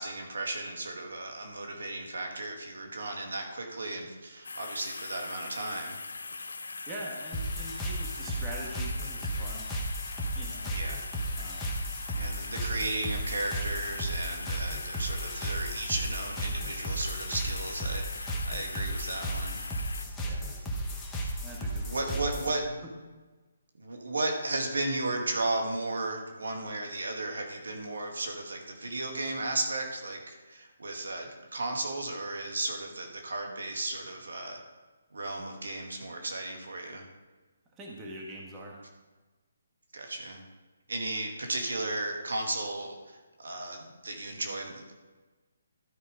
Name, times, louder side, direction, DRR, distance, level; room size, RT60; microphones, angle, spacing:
voice 1, 0.0-6.0 10.7-11.0 12.2-19.6 21.9-22.6 23.8-34.6 35.1-37.1 39.9-40.4 40.9-45.0, right 2 dB, 85° right, 2 dB, 2.0 m, -35 dB
sound 1, 4.4-20.1, left 3 dB, 85° left, 0.6 m, -41 dB
voice 2, 6.9-9.7 10.3-10.7 11.3-11.7 20.2-20.5 21.4-22.9 37.7-38.8, right 1 dB, 15° right, -2 dB, 1.4 m, -43 dB
sound 2, 7.3-22.6, right 1 dB, 10° left, 1.1 m, -34 dB
12.5 x 5.0 x 5.0 m, 1.2 s
hypercardioid pair, 160°, 0 cm